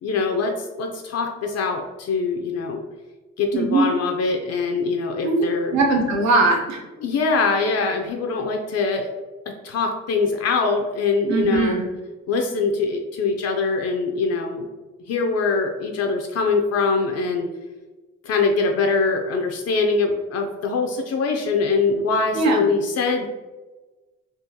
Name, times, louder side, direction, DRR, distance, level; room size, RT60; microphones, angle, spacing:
voice 1, 0.0-2.8 3.4-5.8 7.0-9.1 9.6-11.8 12.3-14.7 15.1-17.5 18.2-23.3, left 4 dB, 55° left, 3 dB, 0.5 m, -23 dB
voice 2, 3.5-3.8 5.2-5.4 5.7-6.8 11.3-11.9 22.3-22.6, right 3 dB, 65° right, 1 dB, 0.8 m, -20 dB
3.6 x 2.4 x 2.7 m, 1.2 s
cardioid pair, 90°, 30 cm